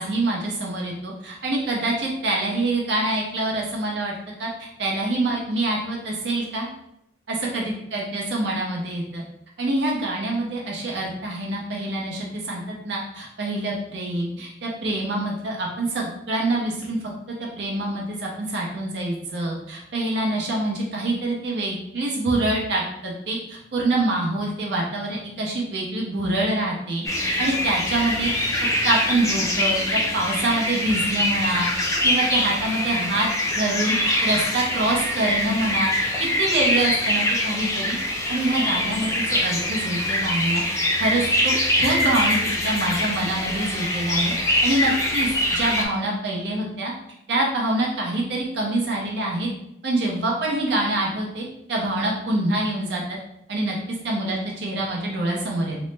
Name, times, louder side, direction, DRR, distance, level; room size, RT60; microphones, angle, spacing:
voice 1, 0.0-4.1 4.4-6.7 7.3-9.2 9.6-17.0 17.6-28.3 28.8-33.3 33.6-38.0 38.3-46.9 47.3-49.5 49.8-53.2 53.5-53.8 54.0-55.8, right 2 dB, 75° right, -2 dB, 0.5 m, -25 dB
sound 1, 27.0-45.8, left 1 dB, 15° left, 0.3 m, -24 dB
3.0 x 2.0 x 3.1 m, 0.80 s
head